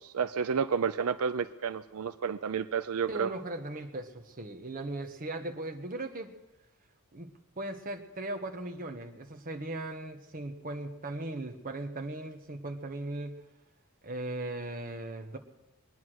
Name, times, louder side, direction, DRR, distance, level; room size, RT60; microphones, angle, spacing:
voice 1, 0.0-3.3, right 6 dB, 85° right, 12 dB, 0.5 m, -31 dB
voice 2, 3.1-6.3 7.1-7.3 7.6-13.4 14.0-15.4, right 2 dB, 40° right, 5 dB, 1.3 m, -38 dB
22.0 x 9.6 x 6.3 m, 1.0 s
head